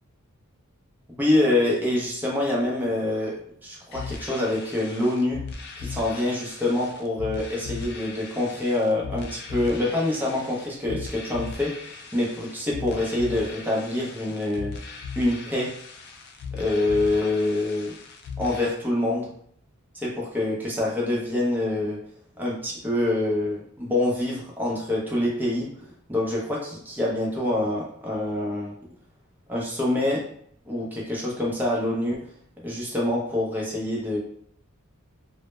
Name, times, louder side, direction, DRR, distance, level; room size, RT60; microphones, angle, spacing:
voice 1, 1.2-5.4 5.8-14.7 15.2-15.7 16.5-17.9 18.4-19.3 19.9-22.0 22.4-25.7 26.1-28.7 29.5-30.2 30.7-32.2 32.6-34.2, left 1 dB, 10° right, -4 dB, 0.5 m, -26 dB
sound 1, 3.9-18.7, left 4 dB, 50° left, 0.3 m, -38 dB
2.1 x 2.0 x 3.0 m, 0.65 s
head